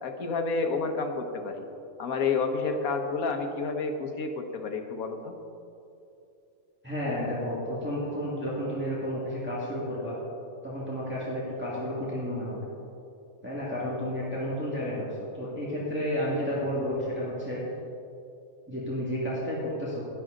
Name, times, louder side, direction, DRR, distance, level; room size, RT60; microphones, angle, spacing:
voice 1, 0.0-1.6 2.0-5.3, left 4 dB, 80° left, 5 dB, 1.4 m, -30 dB
voice 2, 6.8-10.1 10.6-12.6 13.4-17.6 18.7-20.0, equal, 10° right, -7 dB, 1.8 m, -31 dB
11.5 x 10.5 x 3.8 m, 2.7 s
omnidirectional pair, 1.5 m